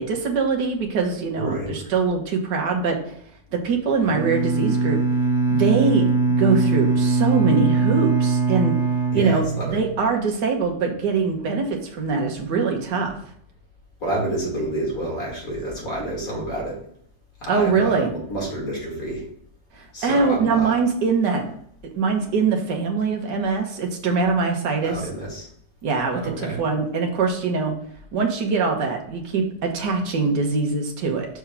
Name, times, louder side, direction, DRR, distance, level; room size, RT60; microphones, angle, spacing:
voice 1, 0.0-3.2 3.5-5.0 5.5-6.0 6.4-8.7 9.1-13.2 17.5-18.1 19.7-21.4 22.0-25.0 25.8-26.3 26.6-27.7 28.1-31.3, right 4 dB, 70° right, 2 dB, 1.7 m, -23 dB
voice 2, 1.4-1.9 9.1-9.7 14.0-16.8 17.4-19.2 19.9-20.7 24.8-25.5 26.1-26.6, right 1 dB, 55° left, -4 dB, 2.8 m, -29 dB
Bowed string instrument, 4.0-10.1, right 4 dB, 5° right, 0.4 m, -21 dB
5.9 x 3.6 x 5.7 m, 0.66 s
omnidirectional pair, 1.9 m